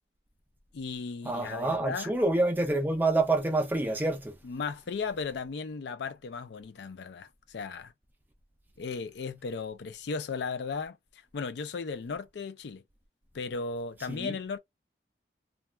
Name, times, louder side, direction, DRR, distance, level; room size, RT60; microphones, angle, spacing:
voice 1, 0.7-2.2 4.4-7.9 8.8-11.0 11.3-12.8 13.3-14.6, left 5 dB, 75° left, 0.4 m, -36 dB
voice 2, 1.3-4.3 14.1-14.3, right 2 dB, 10° right, 0.4 m, -27 dB
2.3 x 2.2 x 3.0 m
head